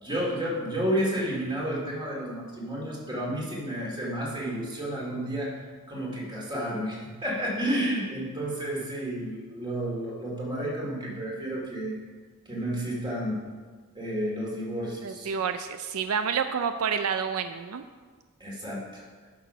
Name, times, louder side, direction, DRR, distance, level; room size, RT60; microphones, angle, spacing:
voice 1, 0.0-5.5 5.9-11.9 12.5-13.4 13.9-15.3 18.4-19.0, right 1 dB, 20° right, -3 dB, 2.5 m, -31 dB
voice 2, 15.0-17.8, right 6 dB, 75° right, 9 dB, 0.4 m, -29 dB
10.5 x 6.2 x 5.6 m, 1.5 s
head